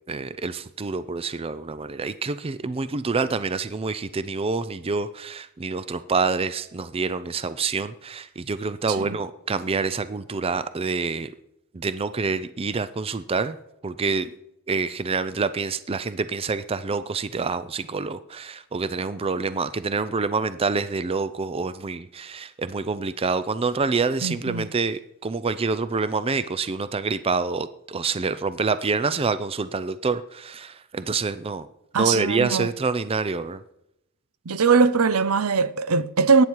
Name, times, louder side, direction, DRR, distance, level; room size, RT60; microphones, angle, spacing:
voice 1, 0.1-11.3 11.7-13.6 13.8-14.3 14.7-31.7 32.0-33.6, right 4 dB, 25° right, 0.5 m, -27 dB
voice 2, 24.2-24.7 31.9-32.7 34.5-36.4, right 5 dB, 75° right, 0.7 m, -21 dB
21.5 x 9.6 x 4.6 m
head